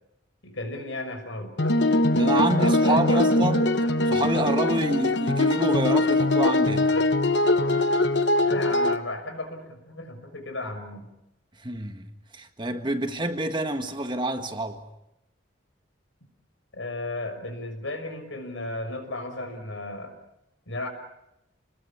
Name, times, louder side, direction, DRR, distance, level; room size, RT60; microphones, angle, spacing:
voice 1, 0.4-1.5 2.3-3.7 8.4-11.1 16.7-20.1 20.7-20.9, left 2 dB, 80° left, 6.1 m, -34 dB
sound 1, 1.6-9.0, left 2 dB, 60° left, 1.2 m, -22 dB
voice 2, 2.1-3.7 4.1-6.9 11.6-14.8, right 1 dB, 25° right, 1.6 m, -27 dB
29.0 x 21.0 x 7.3 m
head